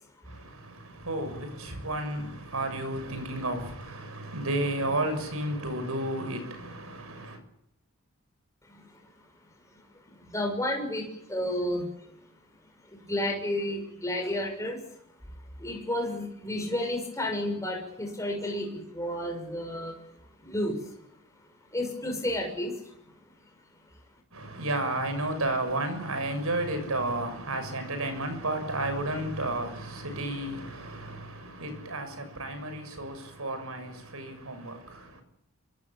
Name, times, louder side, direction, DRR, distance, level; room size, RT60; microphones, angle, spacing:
voice 1, 0.2-7.4 24.3-35.2, right 1 dB, 75° right, 6.6 m, -32 dB
voice 2, 10.0-12.1 12.9-14.8 15.6-20.0 20.4-20.9 21.7-22.8, left 1 dB, 15° left, 6.6 m, -31 dB
26.5 x 24.0 x 7.5 m
head